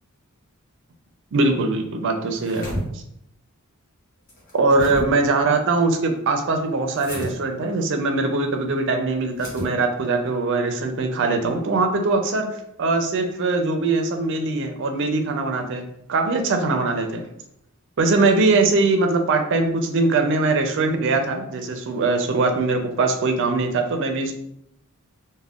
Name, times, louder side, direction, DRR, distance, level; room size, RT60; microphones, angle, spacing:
voice 1, 1.3-2.7 2.9-3.0 4.5-12.5 12.8-17.3 18.0-24.3, right 3 dB, 55° right, 5 dB, 0.4 m, -21 dB
sound 1, 2.3-2.8 4.3-5.0 6.9-7.3 9.3-9.7, equal, 40° left, 1.0 m, -31 dB
2.3 x 2.1 x 3.5 m, 0.76 s
head